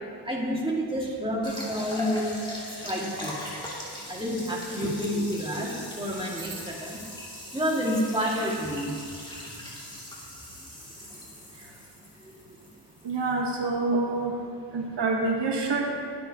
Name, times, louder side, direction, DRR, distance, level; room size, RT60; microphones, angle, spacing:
voice 1, 0.2-2.2 2.8-3.3 4.1-7.0 7.5-9.0 11.0-11.2 12.2-12.3, equal, 10° right, -3 dB, 2.0 m, -29 dB
sound 1, 1.4-13.3, left 1 dB, 10° left, 2.5 m, -40 dB
voice 2, 4.8-5.3 5.6-5.7 6.4-6.5 13.0-14.3 14.7-15.9, right 3 dB, 90° right, 1 dB, 1.2 m, -27 dB
21.5 x 7.6 x 2.9 m, 2.3 s
wide cardioid pair, 110°, 41 cm